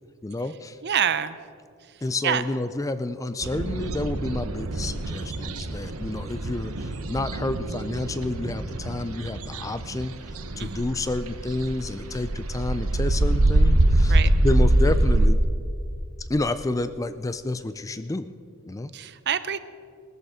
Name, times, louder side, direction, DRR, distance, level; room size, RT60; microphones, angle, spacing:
voice 1, 0.2-0.8 2.0-10.2 10.6-14.2 14.4-15.4 16.2-18.3 18.7-18.9, left 2 dB, 15° left, 12 dB, 0.4 m, -29 dB
voice 2, 0.8-1.4 2.2-2.4 10.6-10.8 14.1-14.3 18.9-19.6, right 9 dB, 50° right, 13 dB, 0.6 m, -26 dB
sound 1, 3.4-15.3, right 1 dB, 70° right, 1.0 m, -24 dB
19.0 x 13.5 x 5.0 m, 2.3 s
head